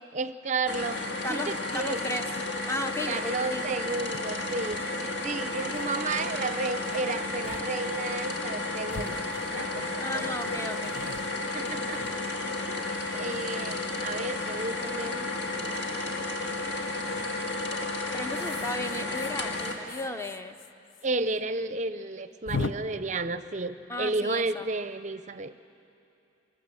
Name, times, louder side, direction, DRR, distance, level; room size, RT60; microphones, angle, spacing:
voice 1, 0.1-2.0 3.1-10.6 11.5-12.2 12.7-15.3 21.0-25.5, right 3 dB, 40° right, 13 dB, 0.5 m, -33 dB
sound 1, 0.7-19.7, left 2 dB, 60° left, 2.0 m, -32 dB
voice 2, 1.2-2.3 2.7-3.7 4.2-4.3 10.0-11.0 18.1-20.6 23.9-24.7, left 1 dB, 15° left, 8 dB, 0.5 m, -35 dB
sound 2, 4.7-4.8 5.3-5.4 5.6-6.0 6.9-7.0 7.4-7.7 8.0-8.1 8.9-9.9 10.4-12.6 13.1-13.9 15.6-15.9 17.1-17.5 18.3-21.1 21.3-21.4 21.7-21.8 22.5-22.7, left 4 dB, 80° left, 0.7 m, -40 dB
24.0 x 20.0 x 7.6 m, 2.7 s
head